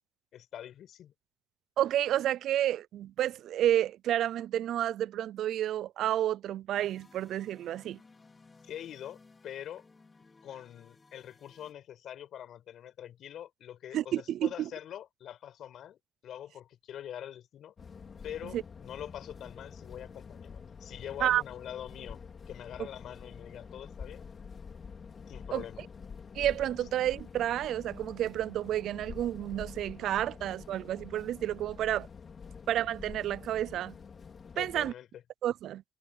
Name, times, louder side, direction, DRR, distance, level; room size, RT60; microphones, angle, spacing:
voice 1, 0.3-1.1 8.6-9.9 10.4-17.7 18.2-22.2 22.5-24.3 25.3-25.8 34.6-35.1, left 10 dB, 70° left, 5.2 m, -44 dB
voice 2, 1.8-8.0 13.9-14.7 18.5-18.6 21.2-21.4 25.5-25.6 26.3-32.1 32.7-33.9 34.6-34.9 35.4-35.8, right 12 dB, 75° right, 0.3 m, -30 dB
sound 1, 6.7-11.7, left 3 dB, 30° left, 4.0 m, -59 dB
sound 2, 17.8-34.9, left 5 dB, 45° left, 4.3 m, -47 dB
cardioid pair, 90°, 0 cm